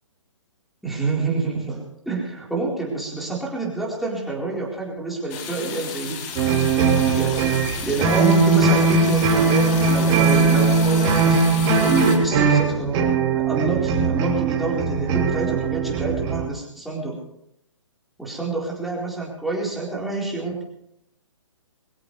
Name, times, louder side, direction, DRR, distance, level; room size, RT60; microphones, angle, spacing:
voice 1, 0.8-6.2 7.1-7.5 7.8-17.2 18.2-20.6, right 3 dB, ahead, -5 dB, 4.3 m, -27 dB
sound 1, 5.3-12.2, left 7 dB, 30° left, 2.6 m, -34 dB
sound 2, 6.3-16.5, right 4 dB, 25° right, 3.0 m, -20 dB
23.0 x 16.0 x 3.3 m, 0.77 s
figure-of-eight pair, 125°, 16 cm